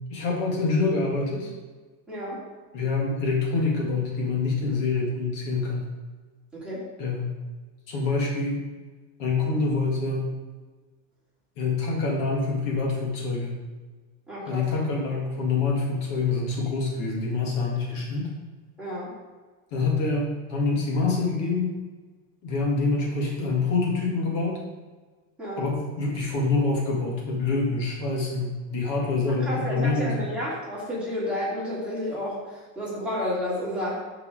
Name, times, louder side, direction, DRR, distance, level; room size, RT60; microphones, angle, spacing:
voice 1, 0.1-1.5 2.7-5.9 7.0-7.4 7.9-8.6 9.2-10.3 11.6-13.6 14.5-18.3 19.7-21.8 22.4-24.6 25.6-30.2, left 3 dB, 55° left, -1 dB, 1.8 m, -26 dB
voice 2, 2.1-2.4 6.5-6.8 14.3-14.6 18.8-19.1 25.4-25.6 29.3-34.0, left 1 dB, 5° right, -9 dB, 2.7 m, -31 dB
12.0 x 4.8 x 3.6 m, 1.3 s
cardioid pair, 160°, 40 cm